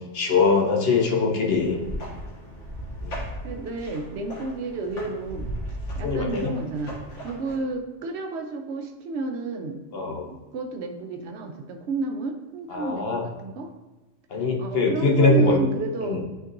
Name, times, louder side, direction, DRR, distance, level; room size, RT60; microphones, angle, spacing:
voice 1, 0.1-1.8 3.0-3.1 6.0-6.5 9.9-10.3 12.7-13.2 14.3-15.6 16.0-16.2, left 3 dB, 55° left, 0 dB, 1.1 m, -22 dB
sound 1, 1.4-7.6, equal, 85° left, 2.0 m, -36 dB
voice 2, 3.4-9.8 10.1-13.7 14.6-16.2, right 3 dB, 65° right, 4 dB, 1.0 m, -31 dB
9.1 x 4.5 x 2.6 m, 1.1 s
omnidirectional pair, 1.3 m